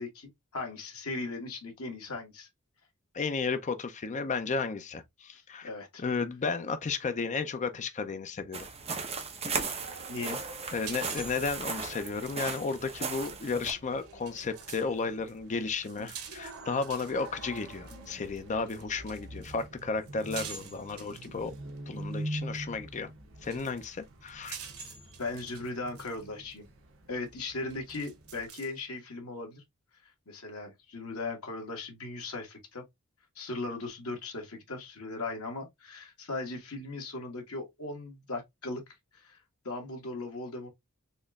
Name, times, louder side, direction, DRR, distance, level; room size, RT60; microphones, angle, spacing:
voice 1, 0.0-2.5 5.3-6.0 10.1-10.4 17.9-18.2 25.2-26.7 27.1-29.6 30.3-32.8 33.3-38.8 39.1-39.4 39.6-40.7, left 3 dB, 80° left, 1.6 m, -38 dB
voice 2, 3.1-5.7 6.0-8.7 10.7-21.5 21.9-23.1 23.4-24.6, left 4 dB, 35° left, 0.5 m, -33 dB
sound 1, 8.5-13.7, right 5 dB, 30° right, 0.8 m, -37 dB
sound 2, 9.8-28.5, right 1 dB, 65° right, 1.0 m, -46 dB
sound 3, 10.8-14.9 15.2-21.8 22.9-23.0 23.4-26.2 26.5-26.6 27.4-28.8, right 7 dB, 85° right, 1.0 m, -47 dB
4.2 x 3.0 x 2.3 m
head